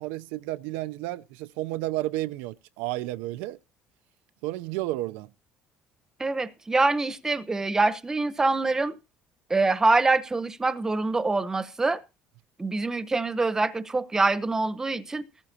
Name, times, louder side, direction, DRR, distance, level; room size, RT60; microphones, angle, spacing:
voice 1, 0.0-3.6 4.4-5.3, right 17 dB, 90° right, 0.6 m, -32 dB
voice 2, 6.2-8.9 9.5-12.0 12.6-15.2, right 3 dB, 15° right, 1.0 m, -25 dB
18.0 x 14.0 x 2.8 m
cardioid pair, 105°, 3 cm